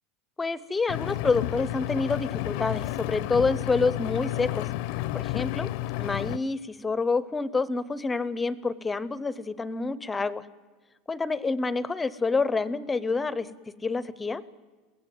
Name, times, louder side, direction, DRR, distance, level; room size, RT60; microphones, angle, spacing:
voice 1, 0.4-4.7 5.1-5.7 6.0-10.4 11.1-13.5 13.8-14.4, left 4 dB, 10° left, 18 dB, 0.6 m, -27 dB
Engine, 0.9-6.4, left 16 dB, 55° left, 0.6 m, -31 dB
22.5 x 17.0 x 9.1 m, 1.4 s
supercardioid pair, 180°, 0 cm